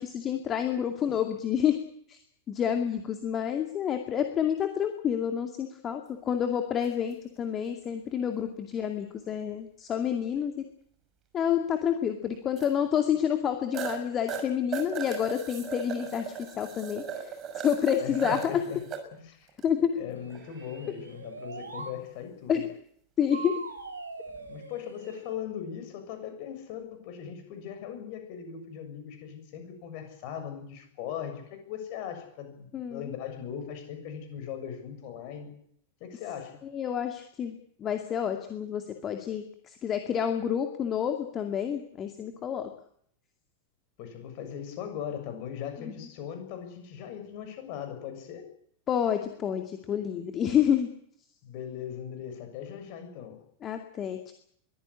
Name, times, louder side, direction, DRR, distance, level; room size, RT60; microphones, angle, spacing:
voice 1, 0.0-1.8 2.1-2.2 2.5-10.5 11.3-17.3 17.6-18.6 19.6-20.0 22.5-22.6 23.2-23.5 32.7-33.1 36.7-42.7 45.8-45.9 48.9-50.9 53.6-54.3, left 9 dB, 25° left, 6 dB, 2.3 m, -29 dB
sound 1, 6.8-7.0 9.4-9.5 12.6-12.7 13.2-13.3 13.7-14.0 14.3-19.0 19.5-19.6 20.3-20.8 24.3-24.5, right 8 dB, 30° right, 6.0 m, -37 dB
voice 2, 18.0-18.8 19.1-19.5 20.0-22.7 24.5-35.5 36.0-36.6 44.0-48.5 51.4-53.4, left 8 dB, 45° left, 7 dB, 7.0 m, -39 dB
sound 2, 20.2-22.0 23.3-25.4, right 4 dB, 80° right, 3.5 m, -42 dB
23.0 x 15.0 x 9.8 m, 0.66 s
figure-of-eight pair, 90°, 0 cm